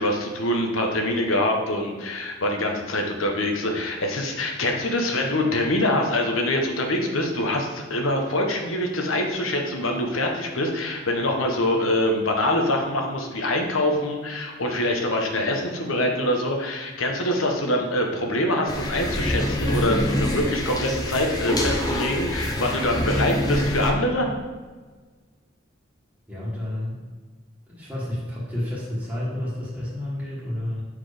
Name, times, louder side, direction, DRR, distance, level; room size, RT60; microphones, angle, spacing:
voice 1, 0.0-24.3, left 1 dB, 75° left, 2 dB, 1.1 m, -24 dB
sound 1, 18.7-23.9, left 1 dB, 20° left, 0.8 m, -26 dB
voice 2, 26.3-27.0 27.7-30.8, left 1 dB, 5° right, -9 dB, 1.6 m, -30 dB
6.0 x 4.7 x 5.0 m, 1.4 s
head